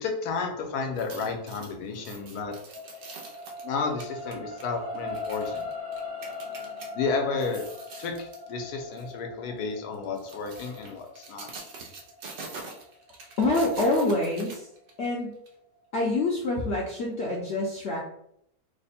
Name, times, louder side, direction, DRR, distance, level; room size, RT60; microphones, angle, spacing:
voice 1, 0.0-2.5 3.6-5.7 6.9-7.6 8.0-11.5, left 4 dB, 80° left, 3 dB, 1.2 m, -32 dB
sound 1, 0.9-6.9 7.3-8.5 8.9-9.1 9.9-15.1 15.5-15.6, right 3 dB, 65° right, 0.5 m, -44 dB
sound 2, 1.9-14.4 15.0-15.1, left 2 dB, 90° right, 1.4 m, -40 dB
voice 2, 13.4-14.7 15.0-15.3 15.9-18.0, left 2 dB, 60° left, -3 dB, 0.8 m, -26 dB
3.3 x 2.1 x 4.1 m, 0.72 s
omnidirectional pair, 1.7 m